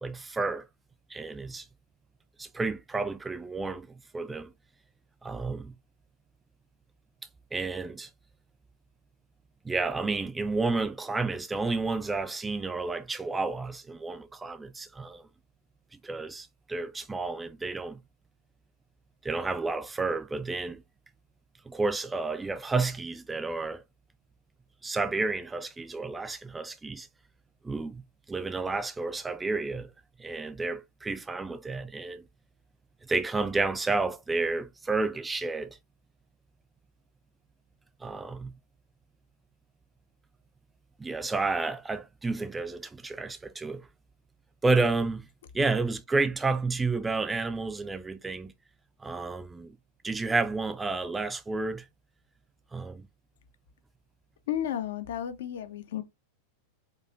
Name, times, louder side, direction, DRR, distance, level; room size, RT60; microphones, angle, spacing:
voice 1, 0.0-0.6 1.1-1.6 2.4-4.5 5.2-5.7 7.5-8.1 9.6-15.3 16.0-18.0 19.2-20.8 21.7-23.8 24.8-27.1 27.6-28.0 28.3-29.9 30.2-32.2 33.1-35.7 38.0-38.5 41.0-43.9 44.6-45.3 45.5-48.5 49.0-49.8 50.0-51.9 52.7-53.1, right 3 dB, 10° right, 0.4 m, -31 dB
voice 2, 54.5-56.0, left 10 dB, 60° left, 0.5 m, -33 dB
4.6 x 2.4 x 2.4 m
figure-of-eight pair, 90°, 0 cm